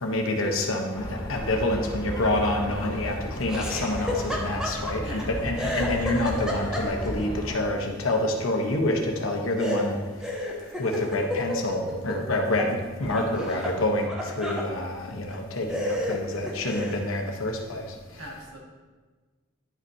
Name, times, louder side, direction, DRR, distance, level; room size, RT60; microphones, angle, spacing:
voice 1, 0.0-10.0 10.8-17.8, left 1 dB, 80° left, 2 dB, 1.0 m, -27 dB
sound 1, 0.9-7.6, equal, 20° left, 0.8 m, -35 dB
Laughter, 3.5-5.2 5.6-7.2 9.6-12.7 13.0-14.7 15.3-15.4 15.7-17.1, left 1 dB, 5° right, 0.8 m, -32 dB
voice 2, 4.9-5.3 18.2-18.6, equal, 75° right, -2 dB, 1.8 m, -40 dB
10.0 x 5.3 x 2.8 m, 1.3 s
head